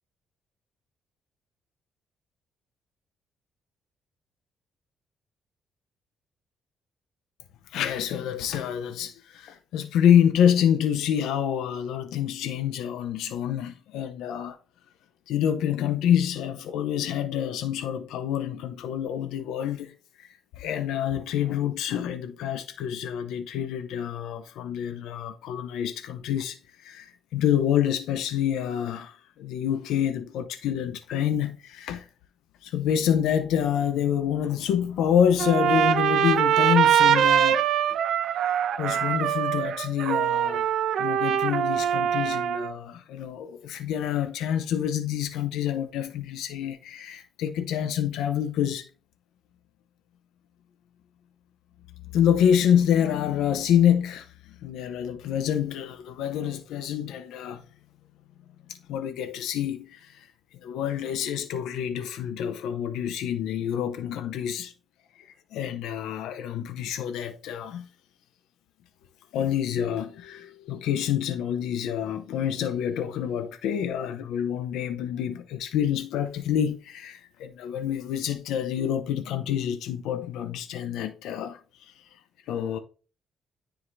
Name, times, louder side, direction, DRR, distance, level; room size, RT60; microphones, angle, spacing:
voice 1, 7.7-14.6 15.3-32.1 32.6-38.0 38.4-40.7 41.0-48.9 52.1-57.6 58.7-60.3 60.5-64.7 65.1-67.9 69.3-82.2 82.5-82.8, left 9 dB, 90° left, 0.7 m, -27 dB
Trumpet, 35.4-42.7, right 9 dB, 75° right, 0.6 m, -23 dB
9.8 x 4.9 x 2.6 m
cardioid pair, 90°, 0 cm